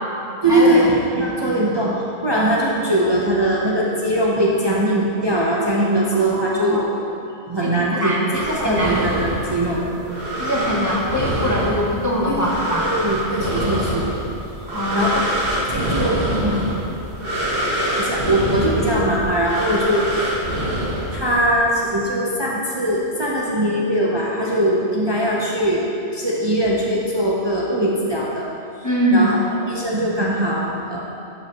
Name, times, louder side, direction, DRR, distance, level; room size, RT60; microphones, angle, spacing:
voice 1, 0.4-6.8 7.5-10.0 12.3-14.0 14.9-15.4 15.7-16.7 18.0-20.3 21.1-25.8 26.1-28.5 29.1-29.4 29.7-31.0, right 1 dB, 25° right, -5 dB, 0.7 m, -21 dB
voice 2, 6.3-6.9 7.6-9.0 10.4-12.9 14.7-15.2 28.8-29.3, equal, 20° left, -4 dB, 0.8 m, -22 dB
sound 1, 8.3-21.6, equal, 55° right, 1.5 m, -25 dB
12.0 x 5.6 x 3.0 m, 2.6 s
omnidirectional pair, 1.2 m